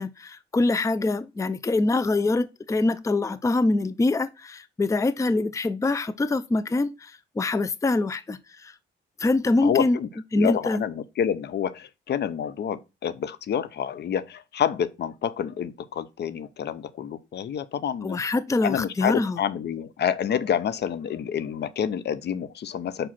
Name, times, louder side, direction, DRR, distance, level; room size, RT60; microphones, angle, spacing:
voice 1, 0.0-8.7 9.2-10.0 10.3-10.8 18.0-19.4, left 2 dB, 15° left, 0.5 m, -24 dB
voice 2, 9.6-10.1 10.3-18.2 18.6-23.1, left 8 dB, 60° left, 0.7 m, -28 dB
5.0 x 4.9 x 5.8 m
cardioid pair, 90°, 20 cm